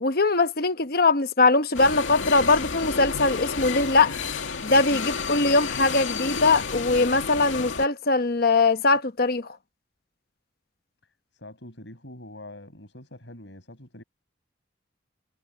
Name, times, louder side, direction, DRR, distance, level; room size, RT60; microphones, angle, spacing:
voice 1, 0.0-4.1 4.6-9.6, left 3 dB, 50° left, 1.1 m, -21 dB
sound 1, 1.7-7.9, left 5 dB, 85° left, 2.3 m, -31 dB
voice 2, 11.3-14.0, left 1 dB, 70° left, 7.2 m, -44 dB
head